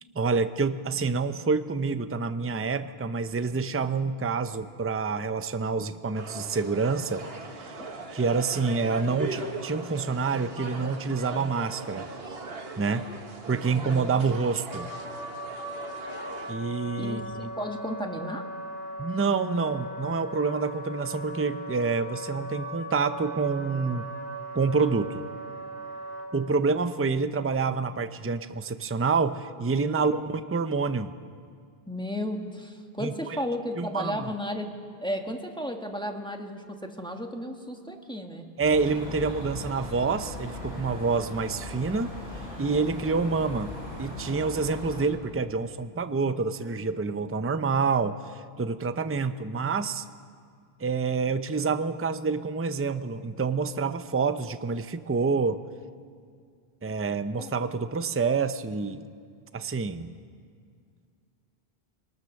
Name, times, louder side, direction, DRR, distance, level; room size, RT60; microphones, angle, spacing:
voice 1, 0.1-7.2 7.6-7.8 8.1-12.1 12.8-13.1 13.5-14.9 16.5-17.5 19.0-24.1 24.5-25.2 26.3-31.1 33.0-33.1 33.8-34.3 38.6-42.1 42.6-43.7 44.0-50.0 50.8-55.6 56.8-59.0 59.5-60.1, right 4 dB, 15° right, 11 dB, 0.5 m, -27 dB
sound 1, 6.2-16.6, right 3 dB, 70° right, 1.6 m, -39 dB
voice 2, 13.8-14.4 17.0-18.4 29.8-30.2 31.9-34.7 35.0-38.5 57.4-57.5, equal, 5° left, 3 dB, 1.4 m, -34 dB
Wind instrument woodwind instrument, 14.7-26.3, right 1 dB, 30° left, 4.7 m, -38 dB
sound 2, 38.6-45.0, left 1 dB, 80° left, 7.9 m, -39 dB
22.0 x 20.0 x 6.5 m, 2.2 s
omnidirectional pair, 1.0 m